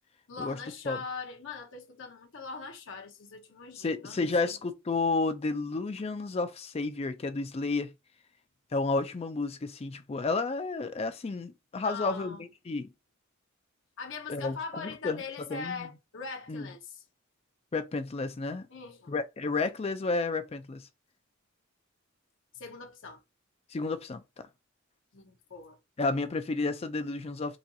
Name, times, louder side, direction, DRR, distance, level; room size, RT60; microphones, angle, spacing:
voice 1, 0.3-4.6 11.8-12.4 14.0-17.0 18.7-19.1 22.5-23.2 25.1-25.8, left 5 dB, 60° left, 0.7 m, -41 dB
voice 2, 3.8-7.9 8.7-12.9 14.3-15.2 15.5-15.9 16.5-16.7 17.7-18.7 19.1-20.9 23.7-24.5 26.0-27.6, left 3 dB, 30° left, 0.4 m, -31 dB
4.1 x 2.7 x 2.3 m
head